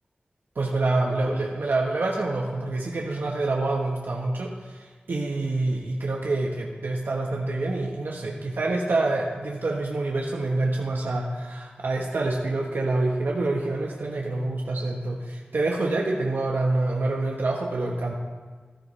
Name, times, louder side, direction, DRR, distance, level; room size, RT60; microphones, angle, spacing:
voice 1, 0.5-18.1, right 2 dB, 85° right, -1 dB, 1.2 m, -27 dB
14.5 x 13.5 x 3.2 m, 1.4 s
wide cardioid pair, 85°, 3 cm